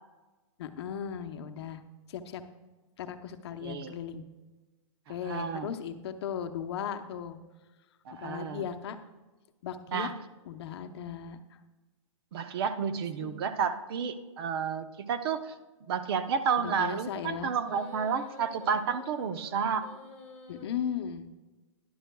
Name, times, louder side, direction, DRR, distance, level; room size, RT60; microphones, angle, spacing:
voice 1, 0.6-1.8 2.1-2.4 3.0-4.2 5.1-7.4 8.2-9.0 9.6-10.1 10.5-11.4 12.9-13.3 16.6-17.5 20.5-21.3, left 8 dB, 55° left, 7 dB, 0.8 m, -37 dB
voice 2, 3.6-3.9 5.2-5.7 8.1-8.6 9.9-10.1 12.3-15.5 15.9-19.9, right 6 dB, 50° right, 11 dB, 0.7 m, -31 dB
sound 1, 17.6-20.6, left 3 dB, 10° left, 2.4 m, -49 dB
15.0 x 11.0 x 2.3 m, 1.2 s
hypercardioid pair, 155°, 17 cm